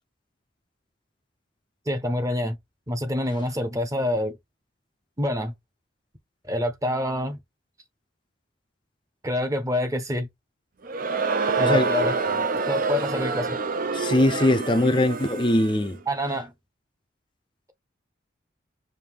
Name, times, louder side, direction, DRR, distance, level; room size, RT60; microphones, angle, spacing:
voice 1, 1.9-2.6 2.9-4.4 5.2-5.5 6.4-7.4 9.2-10.3 11.6-12.2 12.7-13.6 16.1-16.5, left 1 dB, 15° right, 0.9 m, -26 dB
Crowd, 10.8-15.9, right 4 dB, 45° right, 0.6 m, -27 dB
voice 2, 11.6-11.9 13.9-16.0, left 1 dB, 25° left, 0.6 m, -21 dB
5.1 x 2.7 x 3.5 m
head